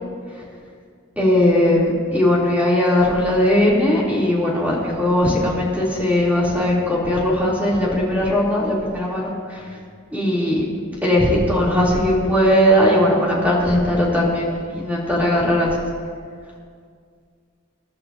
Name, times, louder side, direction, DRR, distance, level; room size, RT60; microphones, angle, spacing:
voice 1, 1.2-9.6 10.1-10.6 11.0-15.7, left 1 dB, 10° right, -6 dB, 3.6 m, -18 dB
28.0 x 11.5 x 2.9 m, 2.1 s
head